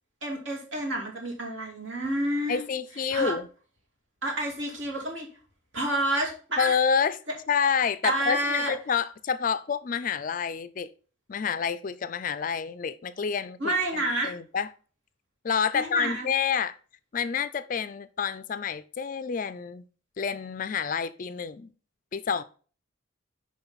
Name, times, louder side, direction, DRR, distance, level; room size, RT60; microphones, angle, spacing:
voice 1, 0.2-2.6 3.1-3.3 4.2-5.3 5.7-6.7 8.0-8.7 13.6-14.3 15.7-16.3, right 1 dB, 65° right, 2.5 m, -29 dB
voice 2, 2.5-3.5 6.6-7.2 7.5-10.9 11.3-14.7 15.4-16.7 17.1-19.8 20.2-21.7 22.1-22.4, left 6 dB, 40° left, 0.4 m, -28 dB
6.8 x 5.2 x 4.0 m
head